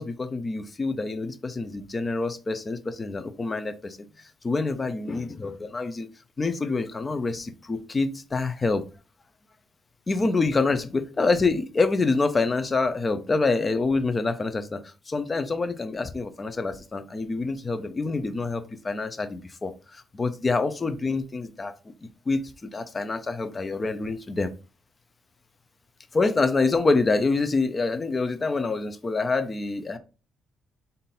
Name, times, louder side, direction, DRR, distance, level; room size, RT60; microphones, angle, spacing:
voice 1, 0.0-4.0 4.4-6.1 6.4-8.8 10.1-24.5 26.1-30.0, left 3 dB, 30° left, 0.6 m, -26 dB
3.7 x 2.6 x 4.1 m
cardioid pair, 90°, 0 cm